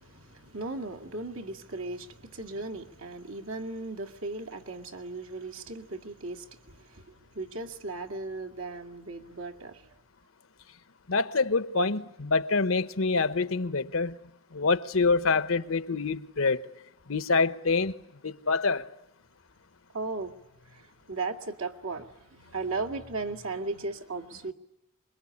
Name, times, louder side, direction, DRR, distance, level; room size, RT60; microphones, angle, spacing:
voice 1, 0.0-10.0 19.9-20.3 20.6-24.5, right 3 dB, 75° right, 2.2 m, -37 dB
voice 2, 11.1-14.2 14.5-16.7 17.1-18.0 18.2-18.9, left 4 dB, 80° left, 1.1 m, -26 dB
26.0 x 22.5 x 9.9 m
head